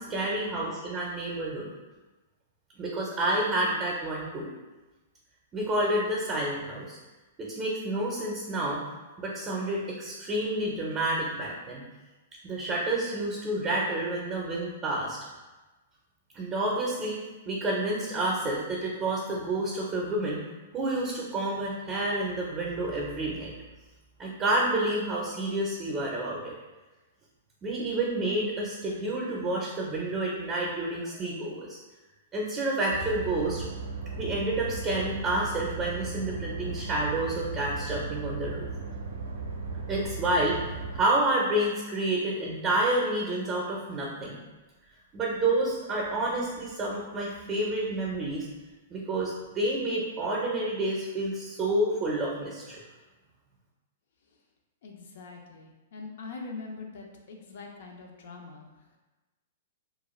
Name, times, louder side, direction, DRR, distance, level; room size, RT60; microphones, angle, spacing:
voice 1, 0.0-1.7 2.8-4.5 5.5-7.0 7.4-8.8 9.2-11.8 12.4-15.2 16.3-17.2 17.5-20.4 20.7-23.6 24.2-26.5 27.6-31.8 32.3-33.6 34.1-38.7 39.9-40.6 40.9-44.4 45.1-48.5 48.9-52.8, right 1 dB, 25° right, -3 dB, 0.5 m, -29 dB
sound 1, 32.9-41.0, right 4 dB, 80° right, 0.5 m, -36 dB
voice 2, 54.8-58.7, left 4 dB, 65° left, 1 dB, 0.4 m, -43 dB
2.4 x 2.2 x 3.0 m, 1.2 s
hypercardioid pair, 120°, 0 cm